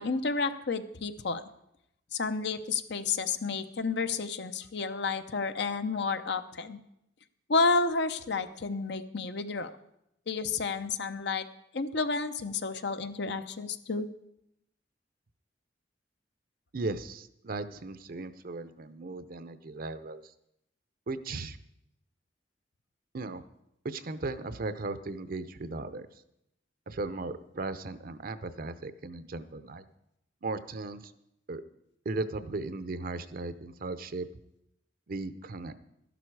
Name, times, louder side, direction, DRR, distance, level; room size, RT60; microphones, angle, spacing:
voice 1, 0.0-1.4 2.1-6.8 7.5-9.7 10.3-11.5 11.7-14.1, left 4 dB, 65° left, 10 dB, 0.8 m, -31 dB
voice 2, 16.7-20.2 21.1-21.6 23.1-23.4 23.8-26.1 26.9-29.8 30.4-31.1 31.5-31.6 32.0-34.3 35.1-35.7, right 3 dB, 50° right, 12 dB, 0.7 m, -37 dB
13.0 x 11.0 x 4.7 m, 0.80 s
head